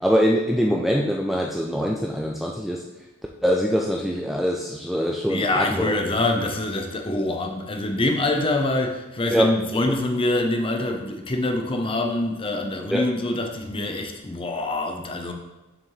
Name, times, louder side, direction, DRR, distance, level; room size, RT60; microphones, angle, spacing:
voice 1, 0.0-2.8 3.4-5.9 9.3-9.5 12.9-13.1, equal, ahead, 0 dB, 0.3 m, -23 dB
voice 2, 5.3-15.3, left 2 dB, 25° left, 3 dB, 0.7 m, -25 dB
6.9 x 5.9 x 3.2 m, 1.1 s
head